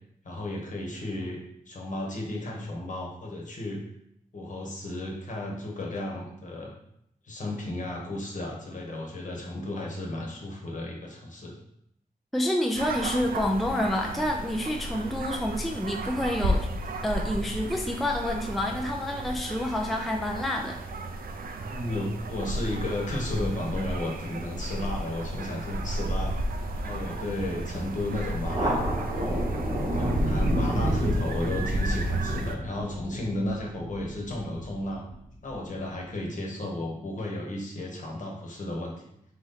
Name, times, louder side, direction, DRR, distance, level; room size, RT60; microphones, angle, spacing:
voice 1, 0.2-1.4 1.7-3.8 4.3-6.7 7.2-11.5 21.7-29.4 29.9-35.0 35.4-38.9, left 1 dB, 55° left, -1 dB, 1.1 m, -34 dB
voice 2, 12.3-16.7 17.0-20.8, left 1 dB, ahead, 1 dB, 0.4 m, -28 dB
sound 1, 12.8-32.6, right 1 dB, 70° right, 0.4 m, -32 dB
Thunder, 28.5-35.5, right 1 dB, 30° right, 0.9 m, -31 dB
3.9 x 3.1 x 3.9 m, 0.77 s
wide cardioid pair, 135°, 15 cm